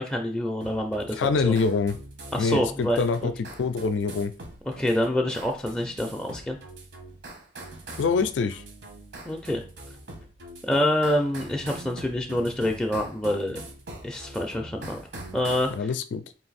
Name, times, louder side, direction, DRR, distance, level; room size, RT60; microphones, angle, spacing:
voice 1, 0.0-1.6 2.3-3.3 4.8-6.6 9.2-9.6 10.6-13.6 14.0-15.0 15.3-15.7, left 1 dB, 5° left, 1 dB, 0.4 m, -26 dB
sound 1, 0.6-15.8, right 2 dB, 75° right, 1.1 m, -43 dB
voice 2, 1.1-2.0 2.4-4.3 8.0-8.6 15.7-16.2, left 4 dB, 90° left, 11 dB, 0.4 m, -25 dB
3.9 x 2.5 x 4.0 m, 0.37 s
head